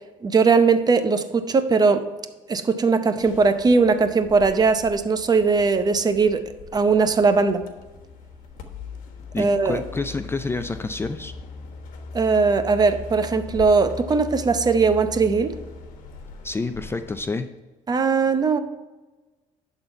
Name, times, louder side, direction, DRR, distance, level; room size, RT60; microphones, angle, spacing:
voice 1, 0.2-2.0 2.5-6.4 6.7-7.6 9.4-9.8 12.1-15.6 17.9-18.6, right 4 dB, 30° right, 10 dB, 0.7 m, -19 dB
sound 1, 3.2-17.2, left 4 dB, 75° left, 1.3 m, -40 dB
voice 2, 9.3-11.3 16.4-17.5, left 3 dB, 15° left, 9 dB, 0.4 m, -28 dB
11.0 x 4.1 x 5.5 m, 1.2 s
cardioid pair, 95°, 14 cm